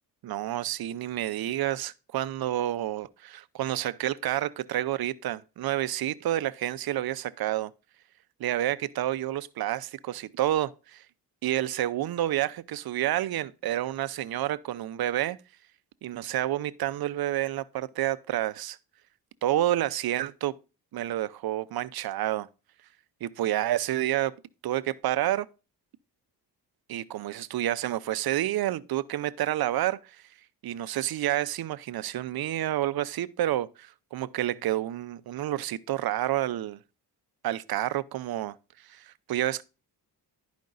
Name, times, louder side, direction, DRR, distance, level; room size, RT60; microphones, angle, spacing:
voice 1, 0.2-7.7 8.4-11.0 11.4-15.4 16.0-18.8 19.4-20.6 20.9-22.5 23.2-24.4 24.6-25.5 26.9-30.2 30.6-36.8 37.4-38.6 38.9-39.6, right 13 dB, 60° right, 0.6 m, -29 dB
10.5 x 5.2 x 3.9 m
cardioid pair, 80°, 42 cm